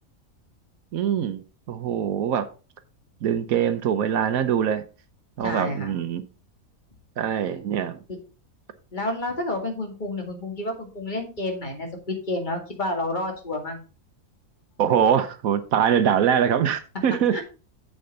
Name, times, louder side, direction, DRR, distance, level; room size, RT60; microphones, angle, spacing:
voice 1, 0.9-2.5 3.2-4.8 5.4-6.2 7.2-8.0 14.8-17.4, right 8 dB, 80° right, 1.2 m, -23 dB
voice 2, 5.4-5.9 8.1-8.2 8.9-13.8 17.3-17.4, left 2 dB, 35° left, 2.2 m, -30 dB
7.8 x 7.0 x 4.0 m
omnidirectional pair, 1.5 m